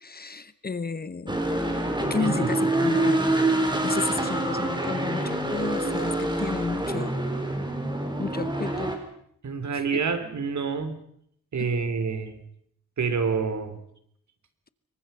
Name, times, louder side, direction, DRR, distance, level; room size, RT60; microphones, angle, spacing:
voice 1, 0.0-1.4 2.1-3.3 3.8-7.2 8.2-9.0 9.9-10.0 11.6-11.7, left 4 dB, 30° left, 1.0 m, -32 dB
sound 1, 1.3-9.0, right 1 dB, 15° right, 4.4 m, -26 dB
voice 2, 2.2-2.5 9.4-11.0 11.5-12.4 13.0-13.8, right 5 dB, 60° right, 3.4 m, -27 dB
26.5 x 23.5 x 5.6 m
wide cardioid pair, 105°, 32 cm